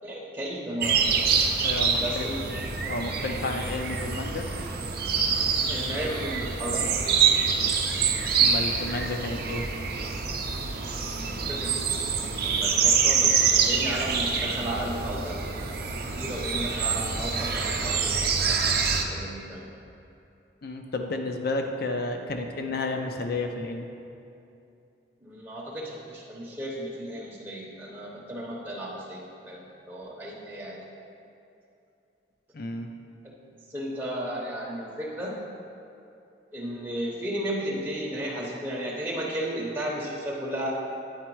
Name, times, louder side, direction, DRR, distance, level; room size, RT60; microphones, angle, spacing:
voice 1, 0.0-1.3 2.0-2.4 2.8-2.9 5.7-7.3 11.0-15.4 16.2-19.7 25.2-30.8 33.7-35.4 36.5-40.7, equal, 10° right, -5 dB, 0.8 m, -34 dB
sound 1, 0.8-19.0, right 6 dB, 50° right, 0.6 m, -26 dB
voice 2, 1.6-2.3 2.9-4.5 8.4-9.7 20.6-23.9 32.5-32.9, left 2 dB, 55° left, 4 dB, 0.6 m, -31 dB
8.8 x 4.5 x 4.6 m, 2.7 s
head